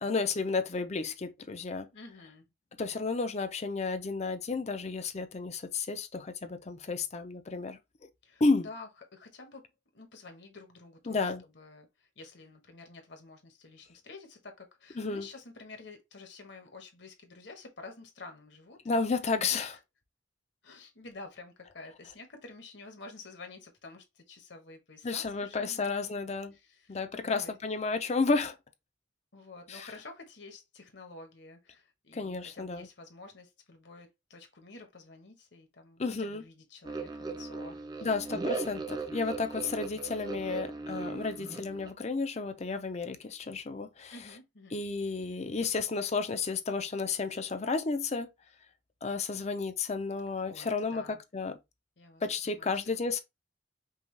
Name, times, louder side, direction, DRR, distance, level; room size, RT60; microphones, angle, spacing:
voice 1, 0.0-1.9 2.8-7.8 8.4-8.7 11.1-11.4 15.0-15.3 18.9-19.8 25.0-26.5 26.9-28.5 29.7-29.9 32.1-32.9 36.0-36.4 38.0-44.1 44.7-48.3 49.0-51.6 52.2-53.2, left 4 dB, 35° left, 0.5 m, -32 dB
voice 2, 1.9-2.4 8.2-9.6 9.9-19.0 19.5-19.7 20.6-26.2 26.5-27.6 29.3-38.2 44.1-44.8 50.5-51.2 52.0-53.0, left 3 dB, 65° left, 1.2 m, -50 dB
sound 1, 36.8-41.9, right 3 dB, 20° right, 0.5 m, -38 dB
5.4 x 2.3 x 3.3 m
head